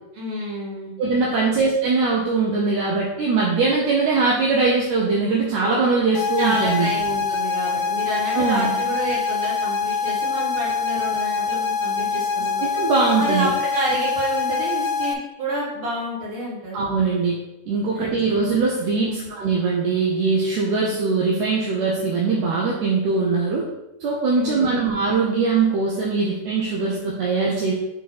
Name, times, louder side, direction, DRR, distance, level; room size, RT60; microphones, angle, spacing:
voice 1, 0.1-0.9 1.4-1.6 6.4-12.7 13.2-16.8 17.9-18.1 19.0-19.3 24.3-25.0, right 1 dB, 45° right, -7 dB, 2.6 m, -29 dB
voice 2, 1.0-6.9 8.3-8.8 12.6-13.5 16.7-17.4 17.7-23.7 24.0-27.7, right 4 dB, 70° right, -3 dB, 1.8 m, -21 dB
sound 1, 6.1-15.1, left 5 dB, 80° left, 2.2 m, -24 dB
6.7 x 3.6 x 4.1 m, 0.95 s
omnidirectional pair, 3.8 m